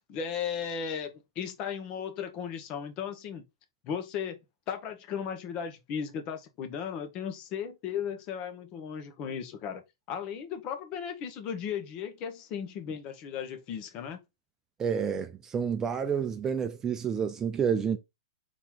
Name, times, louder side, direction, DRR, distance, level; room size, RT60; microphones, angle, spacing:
voice 1, 0.1-3.4 3.8-4.4 4.7-9.8 10.1-14.2, left 7 dB, 35° left, 1.1 m, -36 dB
voice 2, 14.8-18.0, right 7 dB, 20° right, 0.4 m, -29 dB
4.4 x 3.0 x 3.6 m
hypercardioid pair, 135°, 3 cm